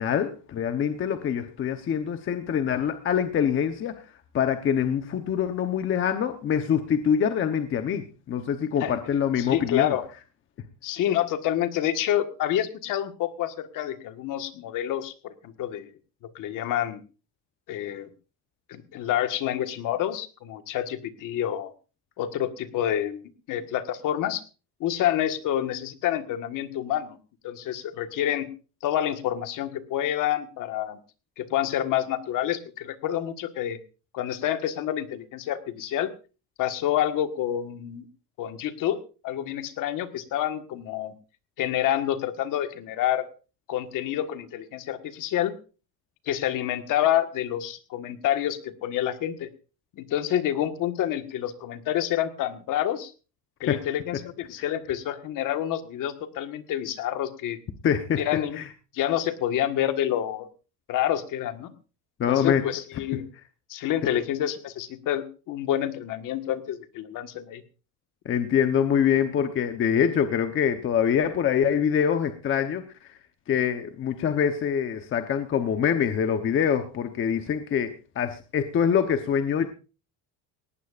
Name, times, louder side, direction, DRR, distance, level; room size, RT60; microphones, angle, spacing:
voice 1, 0.0-4.0 4.3-9.9 53.7-53.8 54.6-54.7 57.8-58.2 58.6-58.7 62.2-62.7 68.2-72.9 73.5-79.7, left 8 dB, 30° left, 7 dB, 1.0 m, -25 dB
voice 2, 9.4-10.0 10.8-15.9 16.3-17.0 17.7-18.1 18.7-21.7 22.2-24.4 24.8-27.2 27.4-28.5 28.8-31.0 31.4-33.8 34.1-36.1 36.6-38.1 38.4-39.0 39.2-41.1 41.6-43.3 43.7-45.5 46.3-49.5 50.0-53.1 53.6-57.6 58.2-58.6 58.9-60.5 60.9-61.7 62.3-63.3 63.7-67.6, left 11 dB, 50° left, 8 dB, 1.6 m, -28 dB
18.5 x 18.5 x 2.5 m, 0.34 s
cardioid pair, 175°, 40 cm